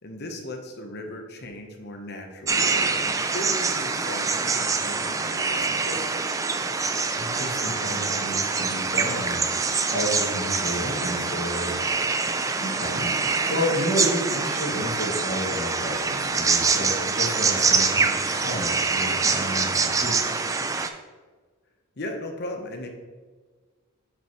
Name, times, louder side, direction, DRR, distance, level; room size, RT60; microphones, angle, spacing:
voice 1, 0.0-2.9 3.2-6.1 22.0-22.9, left 1 dB, 50° left, 3 dB, 1.0 m, -37 dB
sound 1, 2.5-20.9, right 4 dB, 15° right, 0.3 m, -25 dB
voice 2, 7.1-9.5 9.9-11.9 12.6-19.7 19.9-20.3, equal, 70° left, -10 dB, 2.3 m, -31 dB
8.7 x 5.5 x 3.1 m, 1.4 s
head